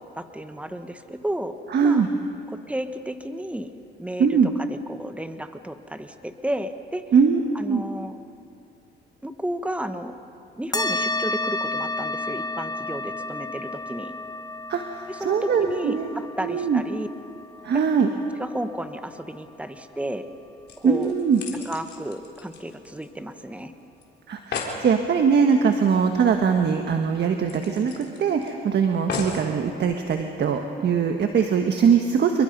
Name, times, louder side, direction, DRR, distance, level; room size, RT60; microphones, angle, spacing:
voice 1, 0.0-1.5 1.8-2.1 2.7-3.7 4.0-7.0 7.5-8.1 9.2-10.1 10.6-14.1 15.1-17.1 18.4-20.3 20.8-21.1 21.5-23.7, right 1 dB, 5° right, 8 dB, 1.4 m, -32 dB
voice 2, 1.7-2.1 4.2-4.5 7.1-7.4 7.7-7.8 14.7-16.1 16.4-16.8 17.6-18.1 20.8-21.4 24.3-27.9 28.2-32.4, right 6 dB, 60° right, 5 dB, 1.4 m, -21 dB
sound 1, 10.7-19.6, left 2 dB, 20° left, 1.3 m, -32 dB
sound 2, 20.3-20.4 20.7-23.3 23.6-23.7 24.0-24.1 24.3-24.8 26.3-26.4 26.8-26.9 27.5-28.5 29.1-29.5 30.2-30.3, left 5 dB, 60° left, 3.9 m, -35 dB
27.0 x 22.5 x 5.4 m, 2.6 s
cardioid pair, 90°, 20 cm